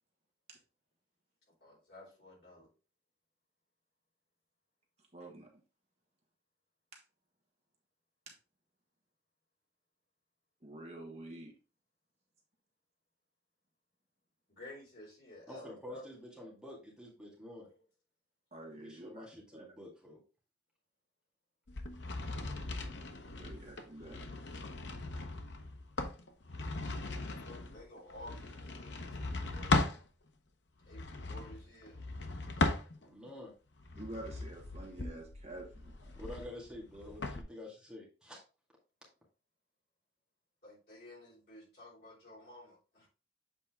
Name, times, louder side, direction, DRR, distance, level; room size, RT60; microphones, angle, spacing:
voice 1, 1.6-2.7 14.5-16.1 17.7-17.8 27.0-29.7 30.9-32.0 40.6-43.1, left 1 dB, 55° left, -5 dB, 3.9 m, -53 dB
voice 2, 5.1-5.5 6.9-7.0 8.3-8.4 10.6-11.5 18.5-19.3 19.5-19.6 23.4-24.2 33.9-35.8, right 1 dB, 35° right, 1 dB, 1.5 m, -48 dB
voice 3, 15.5-17.7 18.7-20.2 23.9-24.1 33.0-33.5 36.1-38.4, left 1 dB, 5° right, -3 dB, 1.9 m, -48 dB
sound 1, 21.7-30.0 30.8-33.3 33.8-37.4, left 2 dB, 85° left, 0.9 m, -38 dB
7.6 x 4.1 x 3.5 m, 0.33 s
head